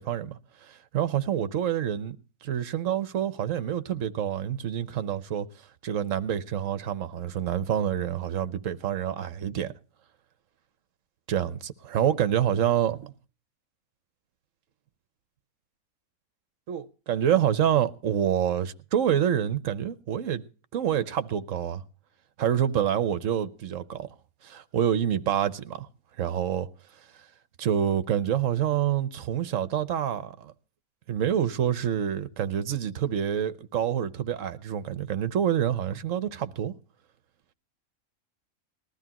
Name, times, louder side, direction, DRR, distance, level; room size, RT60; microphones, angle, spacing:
voice 1, 0.0-2.2 2.4-5.5 5.8-9.7 11.3-13.0 16.7-20.4 20.7-21.8 22.4-24.1 24.4-25.9 26.2-26.7 27.6-30.5 31.1-36.7, right 9 dB, 65° right, 1.2 m, -27 dB
20.0 x 13.5 x 2.9 m
omnidirectional pair, 1.5 m